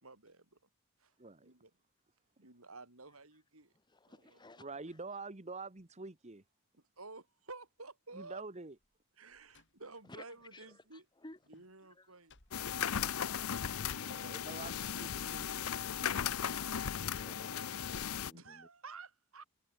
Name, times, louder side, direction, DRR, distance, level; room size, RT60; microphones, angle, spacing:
voice 1, 0.0-0.6 1.0-1.2 1.4-1.7 2.4-3.7 4.1-4.7 7.0-8.4 9.2-11.1 11.5-12.3 16.7-16.8 18.3-19.4, right 3 dB, 75° right, 5.6 m, -53 dB
voice 2, 1.2-1.5 4.6-6.4 8.1-8.7 13.9-15.6, right 3 dB, 30° right, 1.4 m, -46 dB
voice 3, 3.9-4.7 10.1-10.2 10.5-10.7 11.2-11.4 12.0-12.1 14.1-14.2 16.9-18.7, left 2 dB, 20° left, 1.8 m, -55 dB
Slam, 8.8-10.6 10.8-14.3, left 5 dB, 55° left, 6.1 m, -69 dB
sound 1, 12.5-18.3, left 8 dB, 85° left, 0.7 m, -37 dB
head